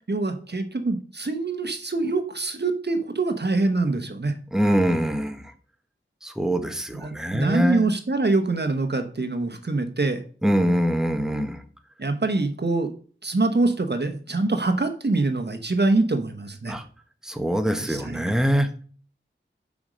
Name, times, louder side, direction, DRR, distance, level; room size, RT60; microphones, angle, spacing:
voice 1, 0.1-4.3 6.9-10.2 12.0-12.9 13.2-16.8 17.8-18.3, right 3 dB, 55° right, 7 dB, 1.1 m, -24 dB
voice 2, 4.5-5.5 6.2-7.8 10.4-11.6 16.7-16.8 17.2-18.7, equal, 5° right, 7 dB, 1.1 m, -23 dB
7.1 x 5.2 x 6.3 m, 0.41 s
wide cardioid pair, 55°, 20 cm